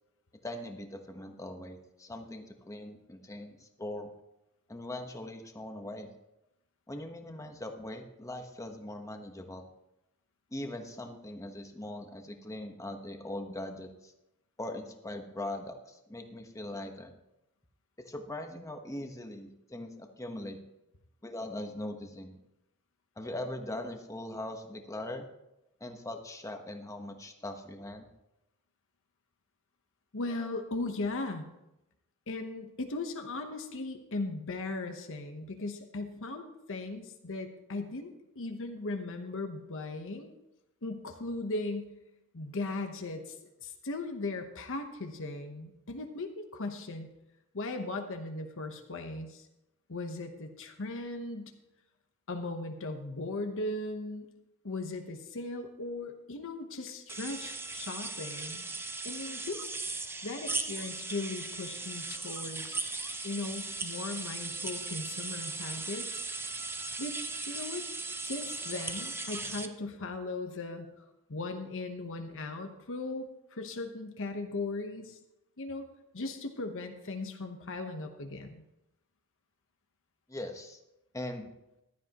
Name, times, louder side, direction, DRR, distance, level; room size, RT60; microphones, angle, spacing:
voice 1, 0.4-4.1 4.7-6.1 6.9-9.7 10.5-14.1 14.6-17.1 18.0-20.6 21.2-22.4 23.2-25.3 25.8-28.1 80.3-80.8 81.1-81.5, left 1 dB, 15° left, 5 dB, 1.1 m, -41 dB
voice 2, 30.1-31.5 32.3-40.3 40.8-41.9 42.3-43.4 43.6-47.1 47.5-49.5 49.9-51.5 52.3-54.3 54.6-58.7 59.0-62.8 63.2-66.1 67.0-67.2 67.5-70.9 71.3-75.2 75.6-75.8 76.1-78.6, left 2 dB, 60° left, 5 dB, 1.1 m, -38 dB
sound 1, 57.1-69.7, right 3 dB, 10° right, 0.7 m, -38 dB
15.0 x 12.0 x 3.0 m, 0.89 s
head